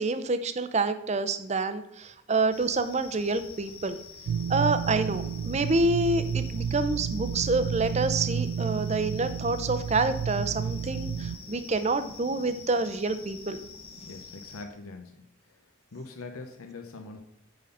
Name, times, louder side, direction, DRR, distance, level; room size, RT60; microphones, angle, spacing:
voice 1, 0.0-4.0 4.5-13.6, right 3 dB, 30° right, 11 dB, 0.5 m, -27 dB
sound 1, 2.5-14.6, left 4 dB, 25° left, 0.8 m, -46 dB
sound 2, 4.3-11.4, right 7 dB, 90° right, 0.3 m, -31 dB
voice 2, 14.0-17.2, left 3 dB, 85° left, 4 dB, 0.8 m, -44 dB
9.2 x 3.9 x 5.6 m, 0.86 s
head